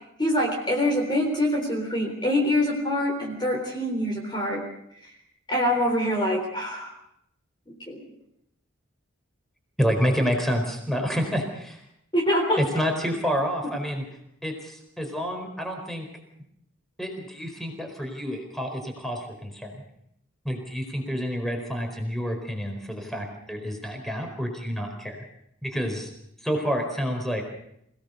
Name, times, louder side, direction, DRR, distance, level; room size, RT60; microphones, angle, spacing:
voice 1, 0.2-4.6 5.5-6.9 7.9-8.0 12.1-12.6, left 1 dB, 20° left, 1 dB, 3.8 m, -25 dB
voice 2, 9.8-11.8 12.6-14.0 14.4-16.1 17.0-19.8 20.4-25.2 25.6-26.1 26.4-27.4, equal, ahead, 3 dB, 4.6 m, -28 dB
28.0 x 18.0 x 6.7 m, 0.77 s
head